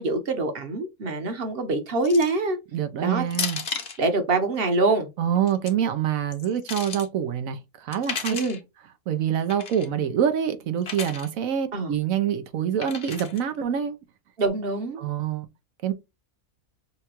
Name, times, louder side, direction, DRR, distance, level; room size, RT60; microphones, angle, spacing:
voice 1, 0.0-2.6 3.0-3.2 4.0-5.1 8.3-8.6 11.7-11.9 14.4-15.0, right 2 dB, 45° right, 1.1 m, -24 dB
sound 1, 2.0-2.4 3.3-4.0 5.3-5.7 6.3-7.1 7.9-8.6 9.5-9.9 10.8-11.3 12.8-13.4, left 5 dB, 45° left, 1.1 m, -33 dB
voice 2, 2.7-3.6 5.2-8.4 9.1-14.0 15.0-15.5 15.8-15.9, right 9 dB, 70° right, 1.2 m, -26 dB
6.8 x 2.3 x 3.0 m
omnidirectional pair, 1.5 m